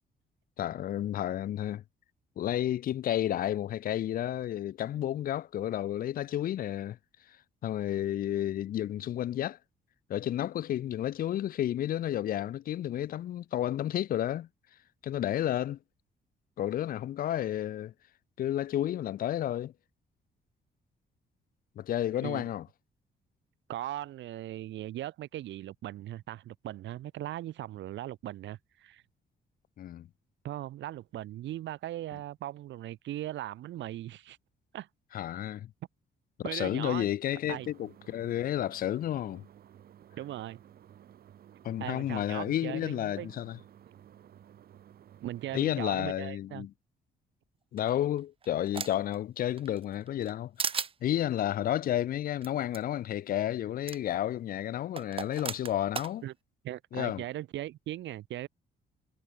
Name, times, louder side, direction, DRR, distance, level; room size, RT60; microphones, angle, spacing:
voice 1, 0.6-1.8 2.4-7.0 7.6-9.6 10.1-14.5 15.0-15.8 16.6-17.9 18.4-19.7 21.8-22.6 29.8-30.1 35.1-35.7 36.4-39.4 41.6-43.6 45.5-46.7 47.7-50.7 51.0-56.2 56.9-57.2, left 12 dB, 50° left, 0.6 m, -31 dB
voice 2, 23.7-29.0 30.4-34.4 34.7-34.9 36.4-37.1 37.5-37.7 40.2-40.6 41.8-43.3 45.2-46.7 56.2-56.3 56.6-58.5, right 13 dB, 85° right, 2.9 m, -39 dB
sound 1, 37.4-45.9, right 10 dB, 55° right, 4.4 m, -55 dB
sound 2, 47.8-49.1 49.6-50.3 50.6-50.9 52.4-52.5 52.7-52.8 53.9-54.0 55.0-56.1, right 6 dB, 30° right, 1.5 m, -35 dB
cardioid pair, 170°, 19 cm